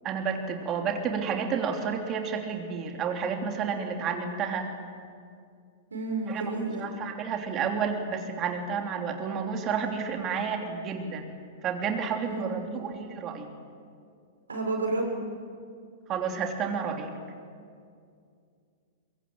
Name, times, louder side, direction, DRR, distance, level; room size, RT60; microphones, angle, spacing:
voice 1, 0.0-4.7 6.3-6.5 6.8-11.3 11.6-13.5 16.1-17.1, right 6 dB, 35° right, 3 dB, 3.2 m, -30 dB
voice 2, 5.9-6.8 12.3-12.6 14.5-15.2, right 2 dB, 85° right, 1 dB, 6.6 m, -30 dB
23.5 x 23.0 x 7.7 m, 2.3 s
hypercardioid pair, 105°, 0 cm